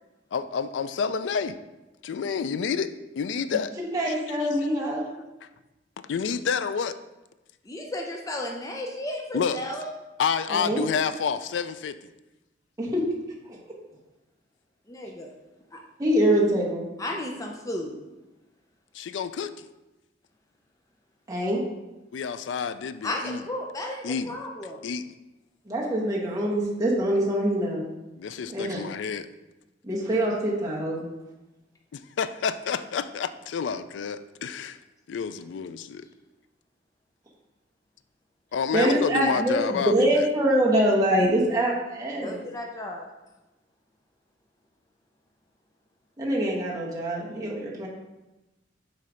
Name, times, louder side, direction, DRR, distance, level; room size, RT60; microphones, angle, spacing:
voice 1, 0.3-1.6 2.0-2.9 3.2-3.7 4.1-4.5 6.1-7.0 9.3-9.6 10.2-12.0 18.9-19.5 22.1-23.4 24.0-24.3 24.8-25.0 28.2-29.3 32.2-34.8 35.1-36.1 38.5-40.2, left 6 dB, 80° left, 12 dB, 0.3 m, -29 dB
voice 2, 3.9-5.1 10.5-10.9 12.8-13.0 13.5-13.6 16.0-16.9 21.3-21.6 25.7-27.9 28.5-28.8 29.8-31.0 38.7-42.4 46.2-47.9, right 1 dB, 20° right, -4 dB, 1.2 m, -24 dB
voice 3, 7.6-9.9 14.9-15.3 15.7-15.8 17.0-18.0 23.0-24.8 42.2-43.1, left 1 dB, 20° left, 1 dB, 0.5 m, -34 dB
6.7 x 3.2 x 5.0 m, 1.0 s
head